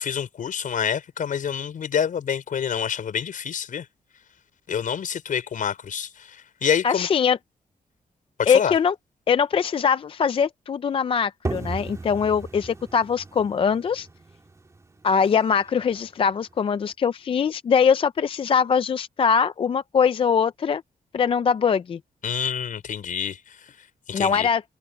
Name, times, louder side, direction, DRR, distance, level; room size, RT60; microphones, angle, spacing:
voice 1, 0.0-3.9 4.7-7.1 8.4-8.7 22.2-23.6 24.1-24.5, left 8 dB, 70° left, 5.3 m, -27 dB
voice 2, 6.8-7.4 8.5-8.9 9.3-14.1 15.0-20.8 21.1-22.0 24.1-24.6, left 6 dB, 40° left, 0.4 m, -22 dB
sound 1, 11.5-16.9, right 3 dB, 20° right, 3.4 m, -37 dB
wide cardioid pair, 170°, 14 cm